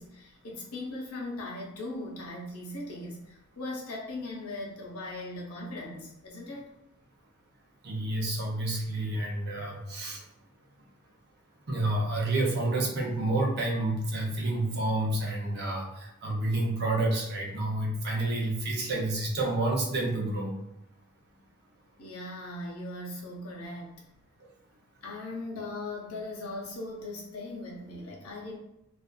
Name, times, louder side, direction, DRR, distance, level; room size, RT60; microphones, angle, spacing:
voice 1, 0.0-6.7 22.0-24.0 25.0-28.6, left 2 dB, 75° left, -2 dB, 0.7 m, -39 dB
voice 2, 7.8-10.2 11.7-20.6, right 2 dB, 50° right, -1 dB, 0.6 m, -29 dB
2.4 x 2.4 x 2.2 m, 0.85 s
head